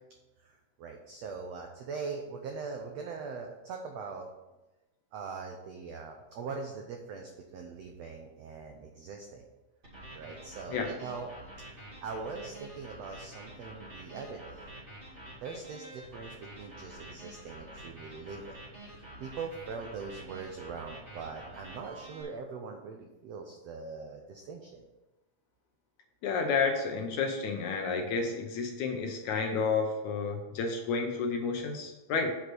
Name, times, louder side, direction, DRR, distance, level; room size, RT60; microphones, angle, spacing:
voice 1, 0.4-4.3 5.1-9.5 10.1-11.3 11.7-14.8 15.4-18.6 18.9-24.8, right 5 dB, 85° right, 3 dB, 1.4 m, -42 dB
sound 1, 9.8-22.2, right 1 dB, 20° right, 1.8 m, -48 dB
voice 2, 26.2-32.3, left 4 dB, 70° left, 3 dB, 1.9 m, -31 dB
8.2 x 5.0 x 6.0 m, 1.1 s
omnidirectional pair, 4.0 m